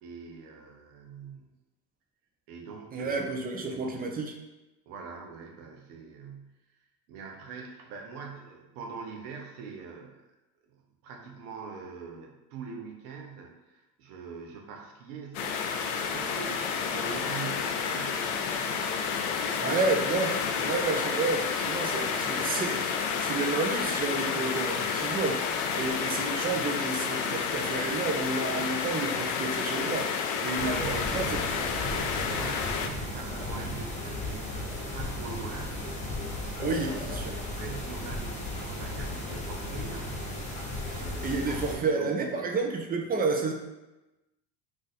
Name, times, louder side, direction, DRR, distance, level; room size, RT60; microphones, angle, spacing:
voice 1, 0.0-1.5 2.5-4.0 4.9-6.6 7.1-10.2 10.7-18.8 30.6-35.8 37.4-40.2 40.9-42.6, right 5 dB, 80° right, 1 dB, 0.8 m, -43 dB
voice 2, 2.9-4.3 19.3-31.4 36.6-37.4 40.9-43.5, right 3 dB, 20° right, 3 dB, 0.5 m, -31 dB
sound 1, 15.3-32.9, left 6 dB, 65° left, 0.5 m, -30 dB
sound 2, 30.6-41.7, left 1 dB, 15° left, 0.9 m, -35 dB
2.5 x 2.4 x 4.0 m, 1.0 s
hypercardioid pair, 75°, 45 cm